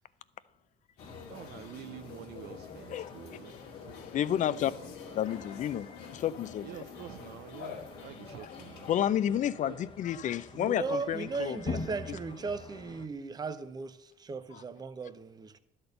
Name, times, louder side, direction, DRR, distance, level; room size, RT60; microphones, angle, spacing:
sound 1, 1.0-8.9, left 7 dB, 85° left, 1.5 m, -47 dB
sound 2, 1.0-13.1, left 3 dB, 30° left, 0.9 m, -46 dB
voice 1, 1.2-4.1 4.4-5.2 6.6-8.9 9.6-9.9 10.8-10.9, right 13 dB, 75° right, 0.4 m, -48 dB
voice 2, 4.1-4.7 5.1-5.9 6.1-6.6 8.9-11.6 14.5-14.6, left 10 dB, 45° left, 0.4 m, -30 dB
voice 3, 10.5-15.6, right 4 dB, 25° right, 0.6 m, -37 dB
12.0 x 4.3 x 6.7 m
cardioid pair, 110°, 17 cm